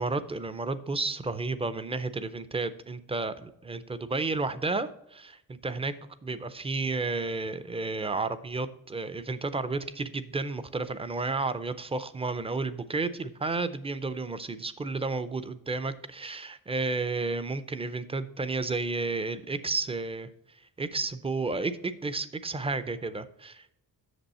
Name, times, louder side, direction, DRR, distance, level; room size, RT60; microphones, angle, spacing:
voice 1, 0.0-5.9 6.2-20.3 20.8-23.7, right 3 dB, 15° right, 13 dB, 0.4 m, -32 dB
8.1 x 6.8 x 4.2 m, 0.78 s
wide cardioid pair, 175°, 35 cm